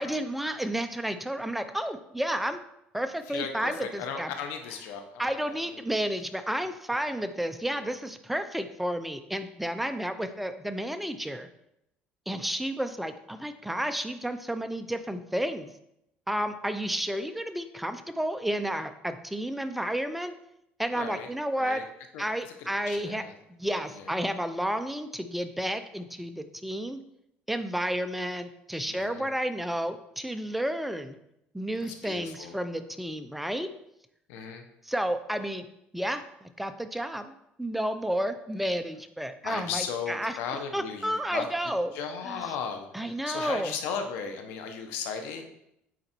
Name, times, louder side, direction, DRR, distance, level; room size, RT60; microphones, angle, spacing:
voice 1, 0.0-2.6 2.9-4.3 5.2-11.5 12.3-15.7 16.3-20.3 20.8-21.8 22.2-23.2 23.5-27.0 27.5-31.2 31.5-33.7 34.9-35.6 35.9-37.3 37.6-40.3 40.7-41.9 42.3-42.4 42.9-43.7, equal, 5° right, 9 dB, 0.6 m, -31 dB
voice 2, 3.3-6.0 7.7-8.0 20.9-21.8 22.1-23.3 23.9-24.2 28.9-29.3 31.8-32.5 34.3-34.7 39.4-41.5 41.9-45.5, left 6 dB, 80° left, 5 dB, 1.1 m, -37 dB
9.1 x 3.9 x 4.5 m, 0.79 s
cardioid pair, 130°, 4 cm